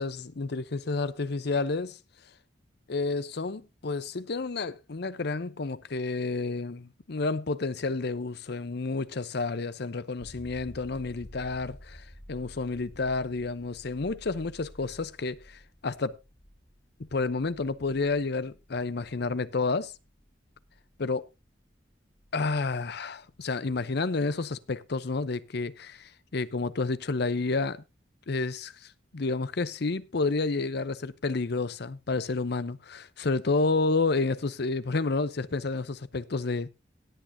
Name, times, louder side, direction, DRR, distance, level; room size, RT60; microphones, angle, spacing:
voice 1, 0.0-2.0 2.9-16.2 17.0-19.9 21.0-21.3 22.3-27.8 28.3-36.7, left 3 dB, 60° left, 0.7 m, -30 dB
sound 1, 10.2-23.7 26.4-26.5, equal, 35° left, 1.8 m, -52 dB
18.0 x 8.7 x 2.7 m
head